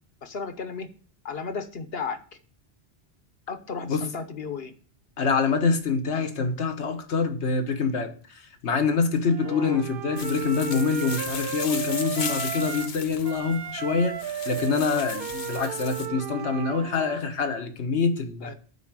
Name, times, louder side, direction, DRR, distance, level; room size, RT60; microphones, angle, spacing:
voice 1, 0.2-0.9 1.2-2.2 3.5-4.7 9.4-9.8 18.4-18.5, left 5 dB, 65° left, 1.2 m, -34 dB
voice 2, 5.2-18.5, left 4 dB, 85° left, 1.4 m, -26 dB
Wind instrument woodwind instrument, 9.3-13.0 13.2-17.2, right 8 dB, 60° right, 0.8 m, -34 dB
sound 1, 10.2-16.1, left 6 dB, 50° left, 0.9 m, -37 dB
9.7 x 4.4 x 7.3 m
omnidirectional pair, 1.1 m